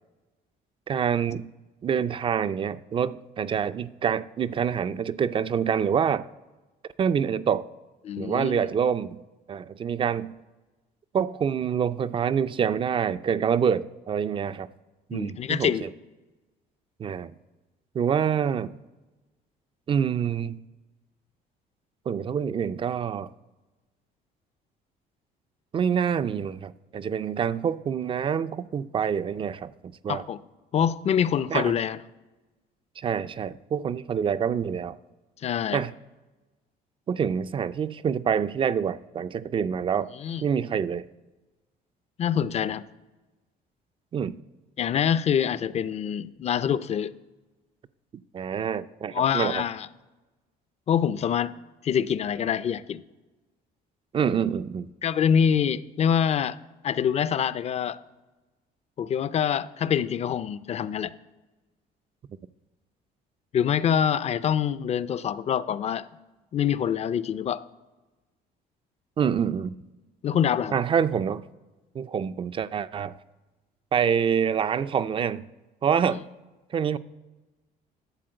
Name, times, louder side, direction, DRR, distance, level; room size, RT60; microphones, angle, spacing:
voice 1, 0.9-1.5 1.8-6.3 7.0-7.7 8.2-9.2 9.5-10.3 11.1-14.7 15.1-15.9 17.0-17.3 17.9-18.7 19.9-20.6 22.1-23.3 25.7-30.3 31.5-31.7 33.0-35.0 35.7-35.9 37.1-40.1 40.4-41.1 44.1-44.4 48.3-49.6 54.1-54.9 69.2-69.8 70.7-71.5 71.9-73.1 73.9-75.5 75.8-76.2 76.7-77.0, right 7 dB, 30° right, 0.3 m, -26 dB
voice 2, 8.0-8.7 15.1-15.9 30.1-30.4 30.7-32.0 35.4-35.8 40.2-40.4 42.2-42.8 44.8-47.1 49.1-49.9 50.9-51.5 51.8-53.0 55.0-56.6 56.8-58.0 59.0-61.1 63.5-66.1 66.5-67.6 70.2-70.8 76.1-76.2, left 8 dB, 40° left, 0.4 m, -25 dB
11.5 x 4.4 x 7.7 m
cardioid pair, 110°, 17 cm